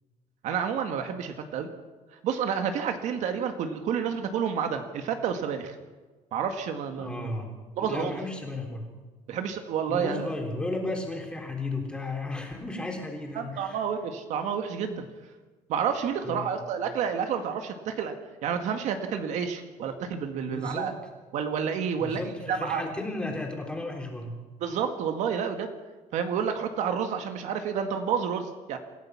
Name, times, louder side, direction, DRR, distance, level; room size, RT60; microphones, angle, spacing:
voice 1, 0.4-1.7 2.2-5.8 6.3-7.3 7.8-8.1 9.3-10.3 13.4-15.0 15.7-18.1 18.4-20.9 21.3-22.2 22.5-22.9 24.6-25.7 26.1-28.8, right 7 dB, 60° right, 6 dB, 1.8 m, -29 dB
voice 2, 7.0-7.5 7.8-8.9 9.9-13.8 16.2-16.6 20.4-20.9 22.0-24.4, left 2 dB, 5° left, 1 dB, 3.5 m, -34 dB
27.5 x 15.5 x 6.0 m, 1.3 s
cardioid pair, 180°, 14 cm